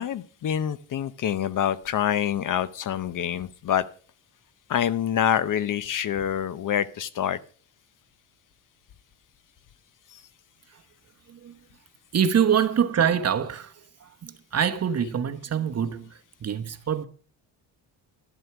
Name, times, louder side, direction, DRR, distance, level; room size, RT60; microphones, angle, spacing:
voice 1, 0.0-3.8 4.7-7.4 10.1-10.2, left 9 dB, 45° left, 0.7 m, -26 dB
voice 2, 12.1-13.7 14.2-16.1 16.4-17.0, right 8 dB, 35° right, 1.0 m, -24 dB
12.5 x 7.8 x 5.8 m
cardioid pair, 120°, 43 cm